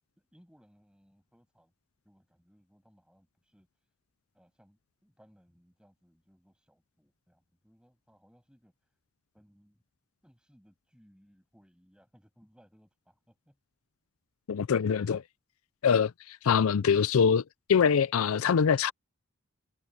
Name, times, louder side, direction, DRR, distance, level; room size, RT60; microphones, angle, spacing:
voice 1, 0.2-1.7 2.0-3.7 4.3-8.7 9.3-9.8 10.2-13.6, equal, 5° right, 7.9 m, -64 dB
voice 2, 14.5-15.2 15.8-17.4 17.7-18.9, left 6 dB, 80° left, 0.4 m, -24 dB
head